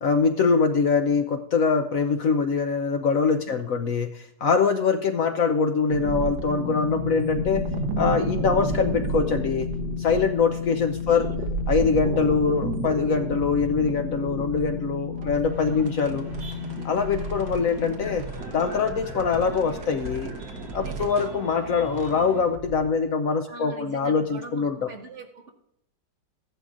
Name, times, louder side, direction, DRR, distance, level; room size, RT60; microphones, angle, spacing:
voice 1, 0.0-7.7 8.0-9.7 10.0-11.3 11.7-16.3 16.8-18.3 18.5-20.3 20.7-24.9, left 5 dB, 60° left, 7 dB, 1.0 m, -23 dB
sound 1, 5.9-22.9, right 4 dB, 80° right, 1.8 m, -33 dB
sound 2, 6.6-18.2, left 10 dB, 80° left, 1.6 m, -34 dB
voice 2, 11.1-11.6 15.1-16.1 20.8-21.4 23.5-25.5, right 3 dB, 45° right, 2 dB, 1.9 m, -43 dB
sound 3, 15.4-22.5, right 1 dB, 60° right, 5.4 m, -43 dB
15.0 x 11.0 x 2.5 m, 0.78 s
omnidirectional pair, 1.8 m